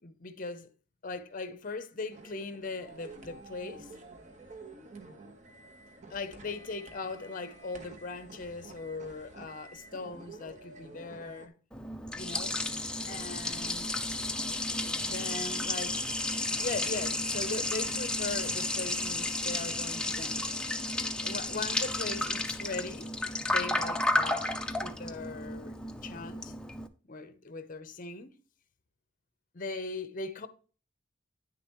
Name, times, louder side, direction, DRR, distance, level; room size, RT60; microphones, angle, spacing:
voice 1, 0.0-0.7 1.0-3.9 6.1-11.5 12.2-12.6 13.0-13.9 15.0-16.0 16.6-20.4 21.2-23.1 23.5-25.8 26.0-26.5 27.1-28.3 29.5-30.5, left 3 dB, 45° left, 0.7 m, -39 dB
sound 1, 2.1-11.5, right 3 dB, 40° right, 1.2 m, -50 dB
Liquid, 11.7-26.9, left 2 dB, 5° left, 0.5 m, -32 dB
9.3 x 6.7 x 3.0 m
head